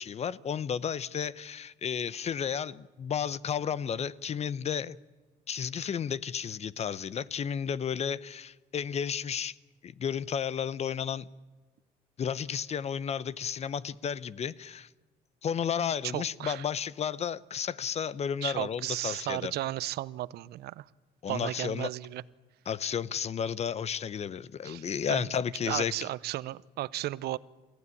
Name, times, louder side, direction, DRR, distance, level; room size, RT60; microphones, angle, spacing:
voice 1, 0.0-5.0 5.5-9.5 9.8-11.3 12.2-14.9 15.4-19.5 21.2-21.9 22.7-25.9, left 7 dB, 40° left, 0.8 m, -32 dB
voice 2, 16.1-16.7 18.4-20.9 21.3-22.2 24.6-25.3 25.6-27.4, right 15 dB, 75° right, 0.7 m, -34 dB
29.0 x 15.5 x 9.8 m
cardioid pair, 110°, 17 cm